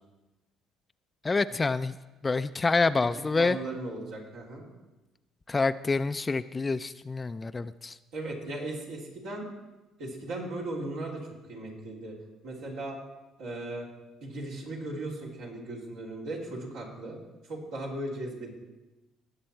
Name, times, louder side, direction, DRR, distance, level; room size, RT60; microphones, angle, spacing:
voice 1, 1.2-2.0 2.2-3.6 5.5-8.0, left 3 dB, 25° left, 12 dB, 0.4 m, -27 dB
voice 2, 3.1-4.7 8.1-9.5 10.0-12.2 12.4-13.0 13.4-13.9 14.2-17.2 17.4-18.5, right 2 dB, 80° right, -4 dB, 3.4 m, -37 dB
18.5 x 7.0 x 4.5 m, 1.1 s
supercardioid pair, 70°, 0 cm